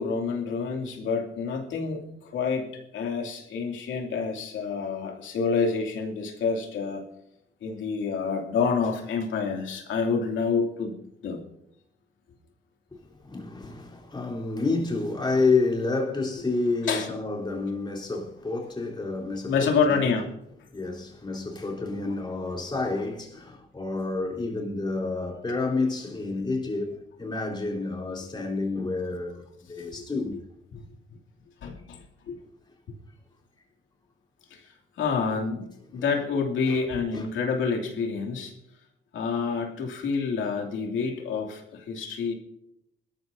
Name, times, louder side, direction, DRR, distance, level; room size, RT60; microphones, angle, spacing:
voice 1, 0.0-7.1 7.6-11.0 11.2-11.4 16.8-17.1 19.5-20.3 29.8-30.0 30.7-30.8 31.6-32.4 34.5-35.7 35.9-38.5 39.1-42.3, left 5 dB, 75° left, 2.7 m, -28 dB
voice 2, 13.2-20.1 20.7-30.4 36.0-36.1 36.7-36.8 37.1-37.2, left 3 dB, 20° left, 3.8 m, -29 dB
21.0 x 13.5 x 2.7 m
cardioid pair, 90°, 20 cm